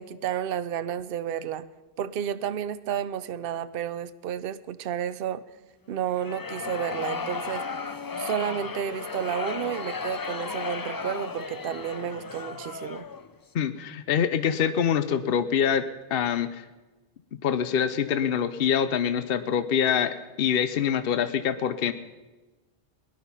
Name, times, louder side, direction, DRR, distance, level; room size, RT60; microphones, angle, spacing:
voice 1, 0.0-1.7 2.0-5.4 5.9-7.7 8.2-13.1, right 9 dB, 65° right, 13 dB, 0.8 m, -31 dB
sound 1, 6.1-13.3, left 4 dB, 30° left, 0.4 m, -34 dB
voice 2, 13.5-15.8 16.1-16.6 17.4-21.9, left 8 dB, 65° left, 11 dB, 0.9 m, -25 dB
19.0 x 11.0 x 5.5 m, 1.1 s
omnidirectional pair, 1.1 m